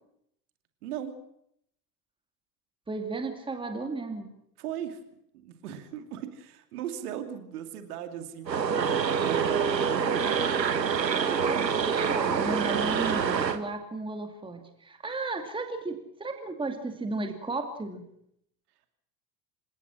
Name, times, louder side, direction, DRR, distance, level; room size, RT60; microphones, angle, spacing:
voice 1, 0.8-1.1 4.6-5.0 5.4-8.5 9.1-9.8, right 9 dB, 60° right, 8 dB, 2.7 m, -37 dB
voice 2, 2.9-4.3 11.2-18.0, right 3 dB, 10° right, 5 dB, 2.5 m, -34 dB
sound 1, 8.5-13.6, right 6 dB, 80° right, 1.5 m, -26 dB
27.5 x 17.5 x 6.3 m, 0.74 s
figure-of-eight pair, 75°, 50 cm